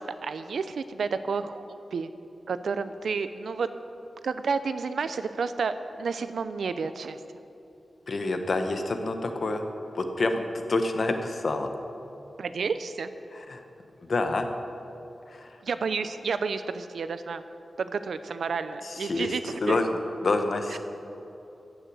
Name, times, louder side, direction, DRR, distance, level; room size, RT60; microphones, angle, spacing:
voice 1, 0.0-2.1 2.5-3.7 4.2-7.2 12.4-13.1 15.6-17.4 17.8-19.8 20.7-20.8, right 5 dB, 90° right, 11 dB, 0.6 m, -31 dB
voice 2, 8.1-9.6 9.9-10.4 10.7-11.7 13.3-13.6 14.1-14.5 15.3-15.6 18.8-19.8 20.2-20.8, left 2 dB, 50° left, 6 dB, 1.0 m, -27 dB
15.0 x 6.4 x 7.8 m, 2.9 s
wide cardioid pair, 140°, 0 cm